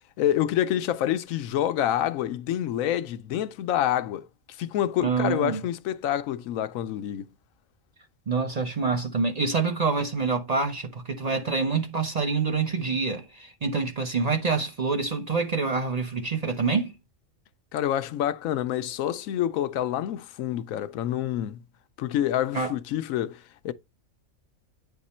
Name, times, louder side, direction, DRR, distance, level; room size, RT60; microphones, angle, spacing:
voice 1, 0.2-4.3 4.6-7.2 17.7-21.6 22.0-23.7, left 11 dB, 85° left, 1.0 m, -27 dB
voice 2, 5.0-5.6 8.3-16.9 22.5-22.7, right 4 dB, 35° right, 0.8 m, -26 dB
9.3 x 3.6 x 4.2 m
omnidirectional pair, 1.4 m